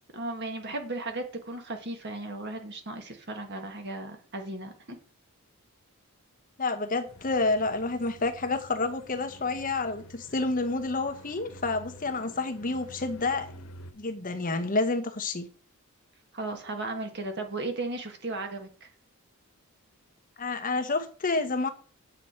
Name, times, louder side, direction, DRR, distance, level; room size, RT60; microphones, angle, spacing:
voice 1, 0.1-5.0 16.3-18.9, right 2 dB, 50° right, 5 dB, 1.7 m, -35 dB
voice 2, 6.6-13.5 14.0-15.5 20.4-21.7, left 3 dB, 40° left, 9 dB, 1.0 m, -29 dB
sound 1, 7.1-13.9, equal, 85° left, 1.4 m, -49 dB
9.0 x 7.6 x 4.5 m, 0.40 s
head